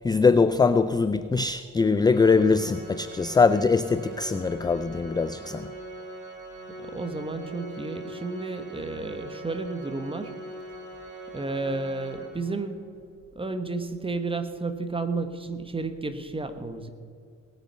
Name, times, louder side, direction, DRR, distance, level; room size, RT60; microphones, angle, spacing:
voice 1, 0.0-5.7, left 4 dB, 15° left, 0.4 m, -22 dB
Organ, 2.0-12.8, right 1 dB, 75° right, 4.4 m, -42 dB
voice 2, 6.8-10.3 11.3-12.9 13.3-16.9, right 3 dB, 15° right, 1.3 m, -32 dB
19.0 x 9.0 x 5.7 m
cardioid pair, 100°, 32 cm